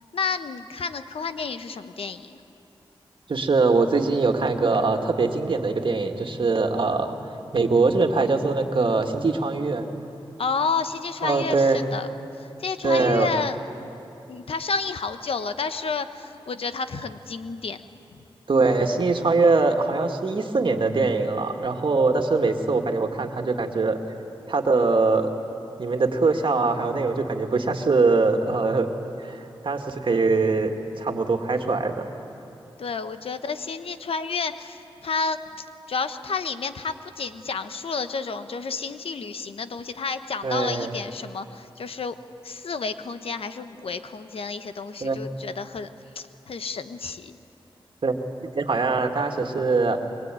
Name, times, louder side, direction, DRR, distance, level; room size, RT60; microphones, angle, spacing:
voice 1, 0.1-2.4 10.4-12.1 12.4-13.6 14.3-17.8 32.8-42.2 42.4-45.9 46.1-47.4, left 5 dB, 75° left, 10 dB, 1.1 m, -30 dB
voice 2, 3.3-7.2 7.5-9.9 11.2-11.8 12.8-13.3 18.5-24.0 24.5-25.3 25.8-28.9 29.2-30.7 31.0-32.0 40.4-41.0 45.0-45.2 48.0-48.1 48.5-50.0, right 3 dB, 60° right, 4 dB, 2.0 m, -22 dB
23.0 x 23.0 x 9.2 m, 2.8 s
cardioid pair, 65°, 10 cm